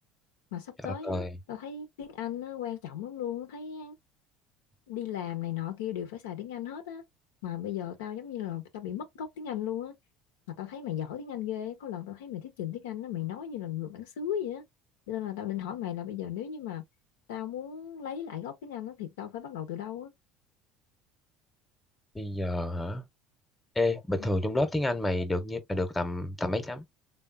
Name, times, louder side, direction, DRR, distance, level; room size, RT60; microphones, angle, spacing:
voice 1, 0.5-4.0 4.9-7.0 7.4-9.9 10.5-14.6 15.1-16.8 17.3-20.1 24.2-24.3, left 10 dB, 80° left, 0.6 m, -36 dB
voice 2, 1.0-1.4 22.1-23.0 23.8-26.9, left 1 dB, 15° left, 0.8 m, -29 dB
3.5 x 2.2 x 2.2 m
hypercardioid pair, 75°, 0 cm